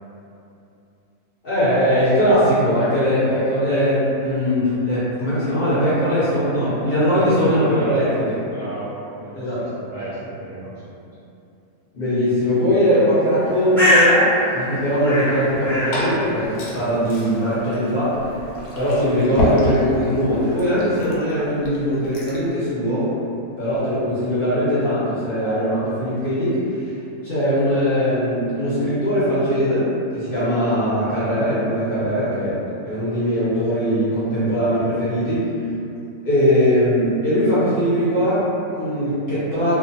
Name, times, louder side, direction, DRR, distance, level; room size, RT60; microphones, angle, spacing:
voice 1, 1.4-8.4 9.3-9.6 11.9-18.2 18.7-23.1 23.6-26.9 27.2-29.9 30.1-32.6 32.8-35.4 36.2-39.8, equal, 50° left, -13 dB, 0.8 m, -20 dB
voice 2, 7.1-8.1 8.5-10.9, right 1 dB, 50° right, -14 dB, 0.6 m, -33 dB
Bird, 13.3-20.9, equal, 5° left, 0.3 m, -25 dB
Liquid, 15.4-22.5, left 1 dB, 75° left, 1.0 m, -29 dB
2.4 x 2.4 x 2.6 m, 2.7 s
omnidirectional pair, 1.6 m